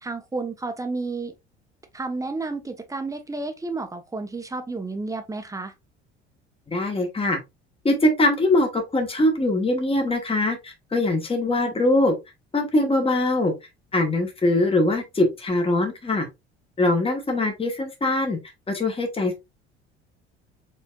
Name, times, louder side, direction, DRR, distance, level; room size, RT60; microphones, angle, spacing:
voice 1, 0.0-1.3 1.9-5.7, right 3 dB, 10° right, 1.0 m, -31 dB
voice 2, 6.7-7.4 7.8-12.1 12.5-13.5 13.9-16.3 16.8-18.4 18.7-19.4, left 2 dB, 15° left, 1.4 m, -22 dB
4.4 x 4.1 x 2.4 m
figure-of-eight pair, 60°, 33 cm